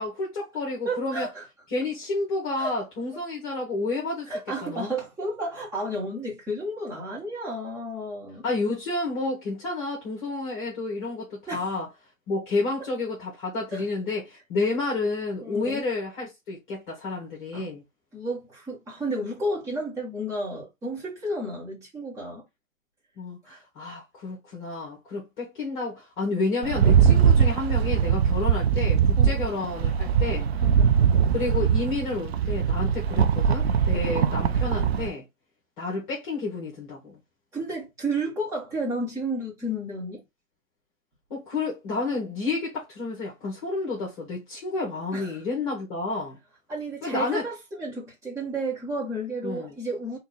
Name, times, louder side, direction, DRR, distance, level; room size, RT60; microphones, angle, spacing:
voice 1, 0.0-1.3 1.7-4.3 4.6-4.9 8.4-11.9 12.3-17.8 23.2-30.5 31.3-35.3 35.8-37.2 41.3-46.4 47.0-47.5 49.4-49.8, left 3 dB, 35° left, 1.6 m, -30 dB
voice 2, 0.8-1.4 2.6-2.7 4.3-8.4 11.5-11.7 13.7-13.8 15.4-15.8 17.5-17.7 18.1-22.4 23.4-23.6 27.1-27.3 29.2-29.4 30.6-30.9 33.9-34.3 37.5-40.2 45.1-45.4 46.7-50.2, right 1 dB, 10° right, 1.3 m, -32 dB
Rattle, 26.6-35.1, right 7 dB, 50° right, 0.5 m, -21 dB
3.7 x 2.5 x 4.3 m
hypercardioid pair, 150°, 41 cm